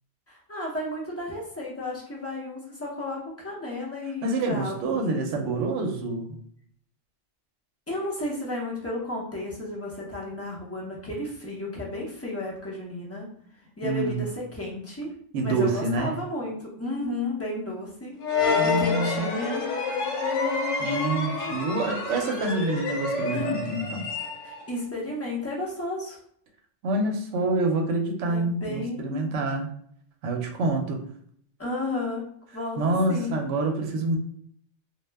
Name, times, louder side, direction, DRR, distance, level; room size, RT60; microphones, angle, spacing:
voice 1, 0.3-5.5 7.9-13.3 13.8-15.1 15.4-18.1 18.6-19.6 23.3-23.7 24.4-26.2 28.3-29.2 31.6-32.3 32.5-33.4, left 2 dB, 20° left, -4 dB, 0.4 m, -33 dB
voice 2, 4.2-6.4 13.8-14.2 15.3-16.2 18.5-19.2 20.8-24.1 26.8-29.7 30.2-31.0 32.8-34.2, right 2 dB, 75° right, 3 dB, 0.9 m, -27 dB
sound 1, 18.2-24.7, left 4 dB, 75° left, 1.0 m, -28 dB
2.3 x 2.0 x 3.3 m, 0.64 s
omnidirectional pair, 1.3 m